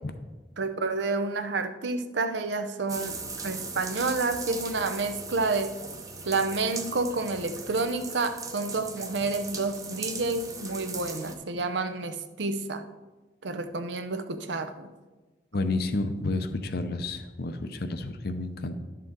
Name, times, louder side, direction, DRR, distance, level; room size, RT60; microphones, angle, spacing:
voice 1, 0.6-5.7 6.2-12.8 13.4-14.9, right 3 dB, 75° right, 9 dB, 0.7 m, -29 dB
sound 1, 2.9-11.3, right 4 dB, 20° right, 0.8 m, -39 dB
voice 2, 15.5-18.7, left 2 dB, 60° left, 8 dB, 0.7 m, -30 dB
11.5 x 6.6 x 3.7 m, 1.2 s
head